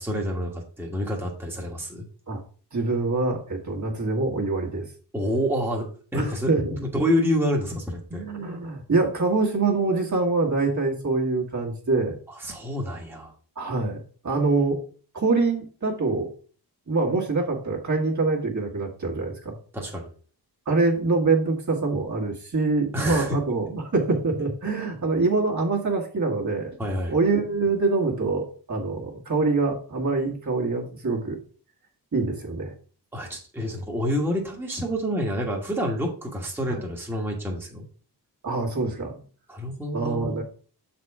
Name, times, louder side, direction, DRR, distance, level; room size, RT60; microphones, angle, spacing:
voice 1, 0.0-2.1 5.1-8.2 12.3-13.3 19.7-20.1 22.9-23.4 26.8-27.1 33.1-37.8 39.5-40.4, equal, 5° right, -2 dB, 1.4 m, -28 dB
voice 2, 2.7-4.9 6.1-6.8 8.1-12.2 13.6-14.0 14.2-14.8 15.1-16.3 16.9-19.6 20.7-26.7 27.1-31.4 32.1-32.7 36.7-36.8 38.4-39.2 39.9-40.4, right 3 dB, 45° right, -1 dB, 1.8 m, -25 dB
6.8 x 4.3 x 4.7 m, 0.43 s
wide cardioid pair, 110°, 41 cm